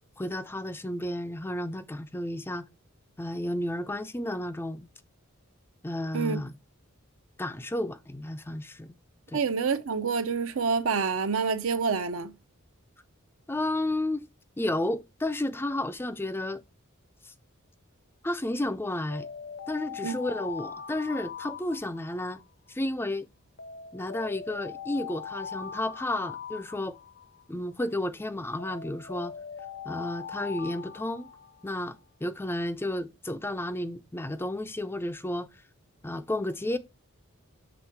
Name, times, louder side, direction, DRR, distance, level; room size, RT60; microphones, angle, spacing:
voice 1, 0.2-2.7 3.2-4.9 5.8-6.5 7.4-9.0 9.3-9.4 13.5-14.3 14.6-16.6 17.2-17.3 18.2-19.3 19.7-22.4 22.7-23.3 23.9-27.0 27.5-29.3 29.8-31.3 31.6-35.5 36.0-36.8, left 1 dB, 10° left, 0.4 m, -32 dB
voice 2, 9.3-12.3 20.0-20.1, right 5 dB, 70° right, 0.7 m, -27 dB
Alarm, 19.1-22.4 23.6-27.4 28.6-31.8, left 7 dB, 55° left, 0.6 m, -41 dB
7.2 x 3.5 x 4.6 m
head